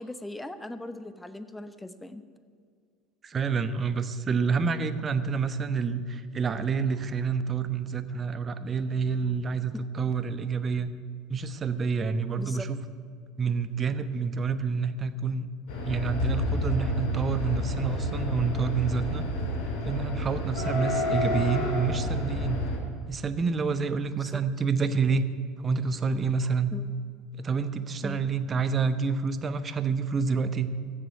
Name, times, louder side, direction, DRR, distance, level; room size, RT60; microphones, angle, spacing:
voice 1, 0.0-2.2 12.4-12.7 24.2-24.4 26.7-26.9 28.0-28.3, left 1 dB, 10° left, 11 dB, 0.9 m, -39 dB
voice 2, 3.2-10.9 11.3-12.8 13.4-15.5 15.9-19.2 19.8-22.6 23.1-25.3 25.6-26.8 27.4-30.8, right 5 dB, 30° right, 11 dB, 1.0 m, -28 dB
sound 1, 15.7-22.8, left 1 dB, 60° left, 3.1 m, -29 dB
15.5 x 7.7 x 9.4 m, 2.1 s
figure-of-eight pair, 70°, 0 cm